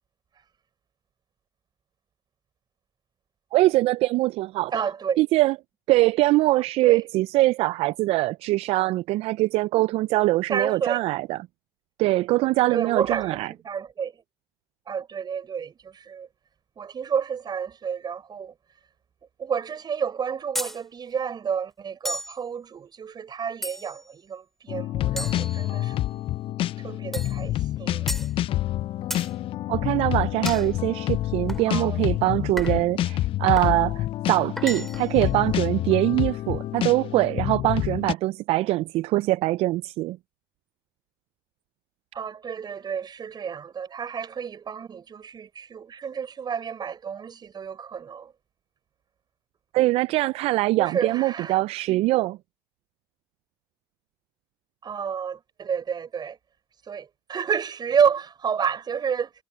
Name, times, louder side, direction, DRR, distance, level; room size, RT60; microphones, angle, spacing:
voice 1, 3.5-4.7 5.2-5.5 5.9-11.4 12.0-13.5 29.7-40.2 49.7-52.4, right 18 dB, 60° right, 0.5 m, -23 dB
voice 2, 4.7-5.2 6.5-7.0 10.5-11.1 12.7-13.4 13.6-14.1 14.9-16.3 16.8-18.5 19.4-26.0 26.8-28.3 31.7-32.0 42.1-48.3 50.8-51.6 54.8-56.4 56.9-59.3, right 7 dB, 40° right, 5.5 m, -30 dB
sound 1, 20.6-20.8 22.1-22.4 23.6-24.1 25.2-26.1 27.1-27.4 28.1-28.3 29.1-29.3 30.5-30.7 31.5-31.7 32.6-32.9 33.6-33.8 34.6-35.2, equal, ahead, 3.3 m, -34 dB
sound 2, 24.7-38.1, left 14 dB, 55° left, 0.6 m, -28 dB
hypercardioid pair, 70°, 11 cm